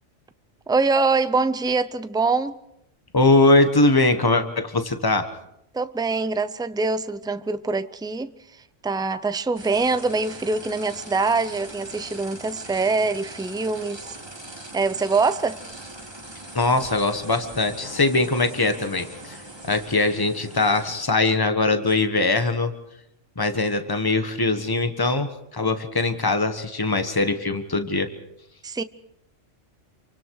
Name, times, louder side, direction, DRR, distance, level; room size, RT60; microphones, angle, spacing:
voice 1, 0.7-2.6 5.7-8.3 8.8-14.1 14.7-15.6 28.6-28.8, right 3 dB, 5° right, 0.4 m, -24 dB
voice 2, 3.1-5.3 16.5-22.7 23.4-28.1, left 2 dB, 20° left, 1.4 m, -21 dB
sound 1, 9.6-21.1, right 1 dB, 20° right, 2.0 m, -41 dB
28.0 x 24.5 x 4.8 m
omnidirectional pair, 1.3 m